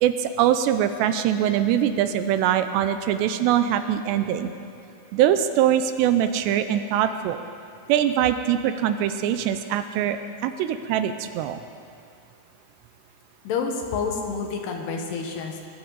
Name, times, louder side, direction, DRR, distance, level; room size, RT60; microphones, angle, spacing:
voice 1, 0.0-4.5 5.1-7.4 7.9-11.6, right 10 dB, 85° right, 9 dB, 2.7 m, -23 dB
voice 2, 13.4-15.6, left 5 dB, 70° left, 2 dB, 3.2 m, -28 dB
22.0 x 14.5 x 4.0 m, 2.6 s
omnidirectional pair, 5.1 m